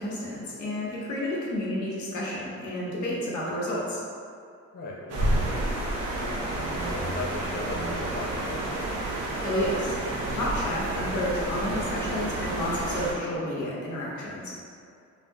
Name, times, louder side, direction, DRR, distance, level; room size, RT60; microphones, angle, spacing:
voice 1, 0.0-4.0 9.4-14.5, left 1 dB, 75° left, -5 dB, 0.8 m, -31 dB
voice 2, 4.7-5.6 6.2-8.6, left 2 dB, 35° left, -3 dB, 0.4 m, -38 dB
sound 1, 5.1-13.1, right 1 dB, 55° right, 0.6 m, -30 dB
2.4 x 2.0 x 3.4 m, 2.3 s
cardioid pair, 90°, 30 cm